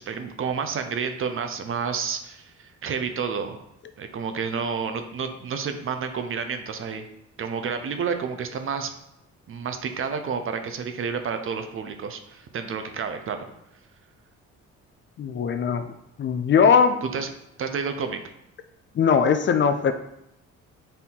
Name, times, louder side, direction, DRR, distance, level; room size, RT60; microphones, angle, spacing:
voice 1, 0.0-3.6 4.0-7.1 7.4-8.9 9.5-13.5 17.1-17.3 17.6-18.2, right 6 dB, 45° right, 7 dB, 0.6 m, -30 dB
voice 2, 15.2-15.9 16.2-17.0 19.0-19.9, left 6 dB, 40° left, 9 dB, 0.4 m, -20 dB
4.3 x 2.7 x 3.7 m, 0.82 s
cardioid pair, 90°, 30 cm